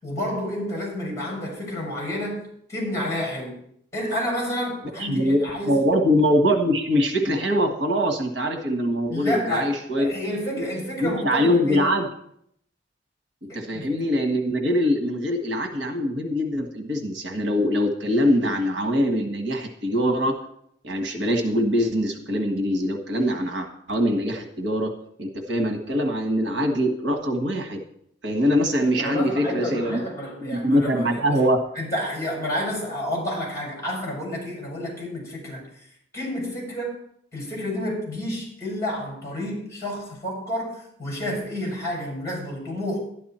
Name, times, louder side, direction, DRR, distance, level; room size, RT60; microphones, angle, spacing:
voice 1, 0.0-3.6 3.9-5.9 9.1-9.7 10.0-11.9 13.5-13.9 29.0-31.4 31.7-35.6 36.1-37.0 37.3-43.0, left 1 dB, 15° left, 6.0 m, -30 dB
voice 2, 5.0-5.4 5.7-10.2 10.6-10.7 11.0-12.1 13.4-20.4 20.8-24.9 25.2-27.8 28.2-30.0 30.4-31.6, equal, 75° right, 1.6 m, -23 dB
12.0 x 11.0 x 4.4 m
head